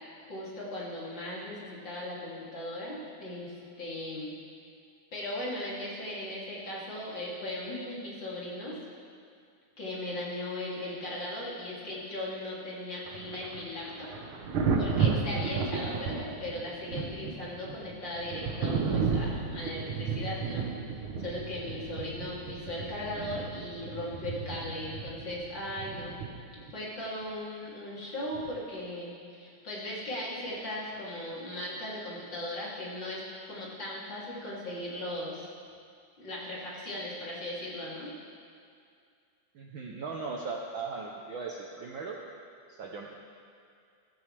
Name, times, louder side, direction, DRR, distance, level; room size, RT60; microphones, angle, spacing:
voice 1, 0.3-4.3 5.1-8.8 9.8-14.1 14.8-26.2 26.5-35.5 36.2-38.1, left 1 dB, 40° left, -7 dB, 3.5 m, -38 dB
Thunder, 13.1-26.7 28.3-28.6, right 5 dB, 65° right, 1.4 m, -33 dB
voice 2, 39.5-42.2 42.7-43.2, right 4 dB, 85° right, 0 dB, 1.0 m, -38 dB
16.0 x 14.5 x 3.4 m, 2.3 s
omnidirectional pair, 3.4 m